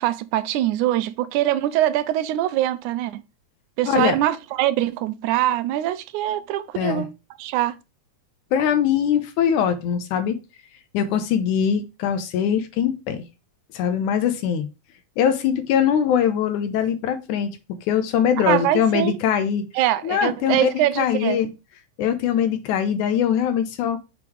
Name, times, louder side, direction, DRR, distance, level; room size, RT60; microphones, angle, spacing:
voice 1, 0.0-3.2 3.8-7.1 7.4-7.8 18.5-19.2 19.7-21.5, right 13 dB, 85° right, 2.0 m, -23 dB
voice 2, 3.9-4.2 6.8-7.1 8.5-10.4 10.9-13.3 13.7-14.7 15.2-19.6 20.0-20.7 21.0-21.5 22.0-24.0, left 8 dB, 85° left, 2.3 m, -22 dB
6.7 x 3.5 x 4.7 m
omnidirectional pair, 3.4 m